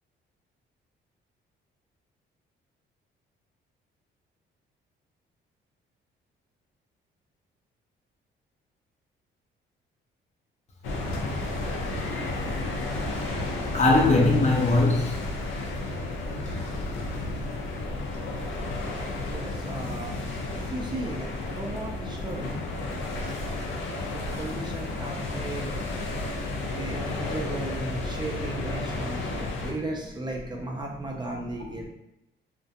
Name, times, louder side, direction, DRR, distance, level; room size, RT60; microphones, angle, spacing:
sound 1, 10.8-29.7, left 2 dB, 80° left, 0.6 m, -32 dB
voice 1, 13.7-15.2 19.8-20.7 21.7-21.9 22.2-23.0 24.4-25.0 25.3-26.4 27.1-27.3 28.8-29.5 30.9-31.1 31.5-31.9, left 2 dB, 35° left, 0 dB, 0.6 m, -27 dB
voice 2, 19.2-20.2 20.5-22.6 24.1-25.9 26.7-31.9, right 2 dB, 20° right, -1 dB, 0.4 m, -36 dB
2.3 x 2.1 x 2.7 m, 0.87 s
cardioid pair, 90°, 20 cm